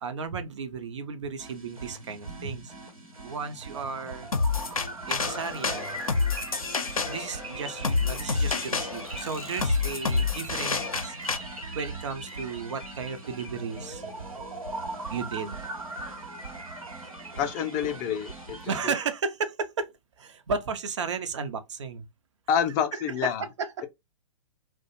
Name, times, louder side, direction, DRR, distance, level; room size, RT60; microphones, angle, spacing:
voice 1, 0.0-2.7 3.2-4.3 5.1-6.0 7.0-11.2 11.7-14.0 15.1-15.6 18.7-19.9 20.2-22.1 22.9-23.9, right 5 dB, 60° right, 0.6 m, -34 dB
sound 1, 1.4-18.8, right 2 dB, 85° right, 1.1 m, -39 dB
sound 2, 4.3-11.4, left 4 dB, 85° left, 0.5 m, -28 dB
voice 2, 17.4-18.6 18.8-18.9 22.5-23.4, left 8 dB, 20° left, 0.4 m, -27 dB
2.4 x 2.1 x 2.8 m
figure-of-eight pair, 115°, 18 cm